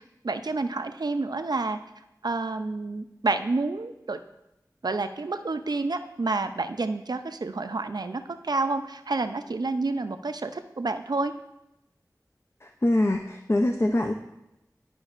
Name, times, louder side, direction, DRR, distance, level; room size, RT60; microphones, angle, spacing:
voice 1, 0.0-1.8 2.2-4.2 4.8-11.3, right 3 dB, 75° right, 9 dB, 0.4 m, -29 dB
voice 2, 12.6-14.1, left 1 dB, 40° left, 4 dB, 0.5 m, -24 dB
11.5 x 5.2 x 2.4 m, 0.88 s
wide cardioid pair, 40°, 7 cm